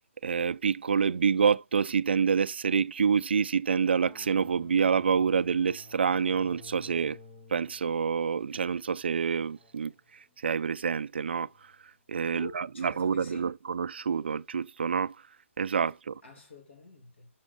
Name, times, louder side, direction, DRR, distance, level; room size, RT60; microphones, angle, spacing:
voice 1, 0.2-7.2 7.5-11.5 12.1-15.2 15.6-16.2, right 6 dB, 50° right, 0.4 m, -27 dB
sound 1, 3.8-11.9, left 3 dB, 10° left, 0.4 m, -54 dB
voice 2, 12.3-13.5 16.2-17.3, left 2 dB, 60° left, 2.6 m, -46 dB
7.1 x 6.3 x 4.0 m
hypercardioid pair, 180°, 7 cm